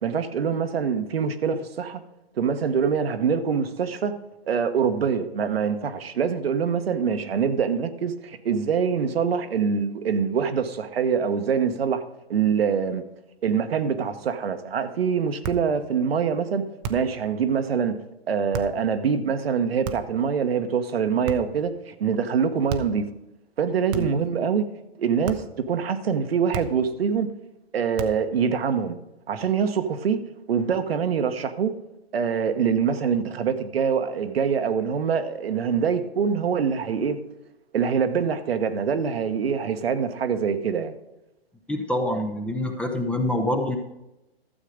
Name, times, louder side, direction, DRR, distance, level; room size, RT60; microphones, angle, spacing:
voice 1, 0.0-2.0 2.4-4.2 4.5-12.0 12.3-13.0 13.4-16.6 16.9-23.0 23.6-24.7 25.0-27.3 27.7-29.0 29.3-30.2 30.5-31.8 32.1-37.2 37.7-41.0, right 6 dB, 70° right, 1.2 m, -24 dB
sound 1, 15.4-15.7 16.8-17.2 18.5-18.8 19.8-20.2 21.2-21.7 22.7-23.0 23.9-24.3 25.2-25.6 26.5-26.9 28.0-28.3, right 5 dB, 30° right, 0.8 m, -34 dB
voice 2, 41.7-43.8, left 1 dB, 5° left, 0.7 m, -26 dB
12.5 x 7.5 x 5.1 m
hypercardioid pair, 125°, 31 cm